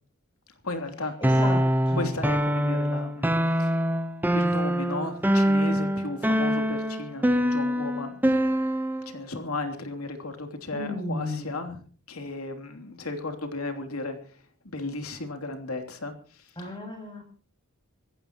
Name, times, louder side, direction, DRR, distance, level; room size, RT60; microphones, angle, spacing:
voice 1, 0.6-1.1 1.9-3.8 4.3-8.2 9.0-11.8 12.1-16.8, left 2 dB, 80° left, 6 dB, 3.1 m, -35 dB
voice 2, 1.2-2.1 10.7-11.5 16.6-17.2, left 2 dB, 20° left, 3 dB, 7.9 m, -33 dB
sound 1, 1.2-9.1, equal, 10° right, 1.0 m, -24 dB
25.5 x 15.0 x 3.0 m, 0.42 s
head